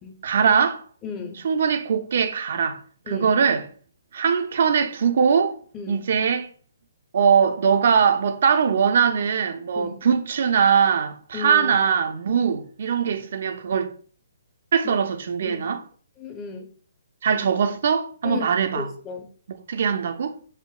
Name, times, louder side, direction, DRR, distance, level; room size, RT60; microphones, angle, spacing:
voice 1, 0.2-0.8 1.4-2.8 3.1-3.6 4.1-5.6 5.9-6.5 7.1-13.9 14.7-15.8 17.2-18.9 19.7-20.4, right 6 dB, 60° right, 0.4 m, -21 dB
voice 2, 1.0-1.4 3.1-3.3 5.7-6.0 9.8-10.0 11.3-11.8 14.8-15.0 15.4-15.6 16.2-16.7 18.2-19.3, left 5 dB, 20° left, 0.6 m, -35 dB
5.5 x 2.1 x 2.3 m
hypercardioid pair, 135°, 0 cm